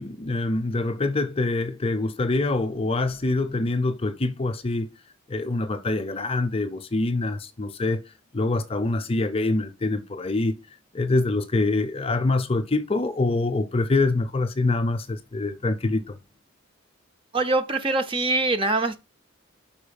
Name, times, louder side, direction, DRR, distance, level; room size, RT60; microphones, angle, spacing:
voice 1, 0.0-4.9 5.3-8.0 8.3-10.6 10.9-16.2, left 2 dB, 25° left, 0.5 m, -25 dB
voice 2, 17.3-19.0, right 2 dB, 25° right, 0.6 m, -23 dB
5.6 x 4.5 x 5.1 m
head